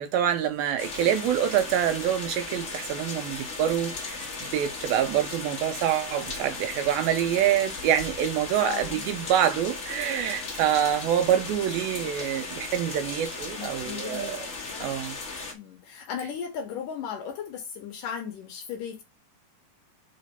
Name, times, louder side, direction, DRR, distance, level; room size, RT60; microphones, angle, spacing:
voice 1, 0.0-14.4 14.8-15.2, right 10 dB, 80° right, 2.2 m, -26 dB
sound 1, 0.8-15.5, left 3 dB, 50° left, 1.0 m, -36 dB
voice 2, 8.6-9.1 13.6-15.0 15.5-19.0, left 7 dB, 70° left, 2.3 m, -36 dB
5.4 x 4.0 x 5.2 m
omnidirectional pair, 4.7 m